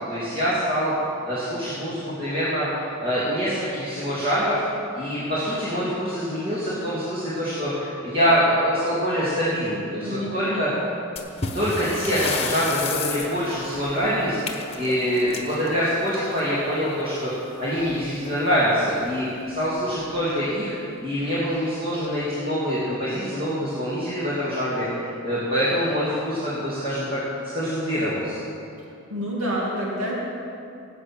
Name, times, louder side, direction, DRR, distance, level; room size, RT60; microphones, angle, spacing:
voice 1, 0.1-0.9 1.2-2.7 3.0-4.6 4.9-10.7 11.5-14.4 14.8-17.3 17.6-20.7 21.0-27.2 27.5-28.4, equal, 45° right, -10 dB, 3.0 m, -25 dB
voice 2, 10.0-10.9 28.8-30.2, equal, 85° right, -4 dB, 2.5 m, -29 dB
sound 1, 11.2-16.5 17.8-18.0 18.3-18.4 19.0-19.1 19.8-20.1, left 4 dB, 30° left, 1.1 m, -32 dB
18.0 x 8.4 x 6.2 m, 2.6 s
head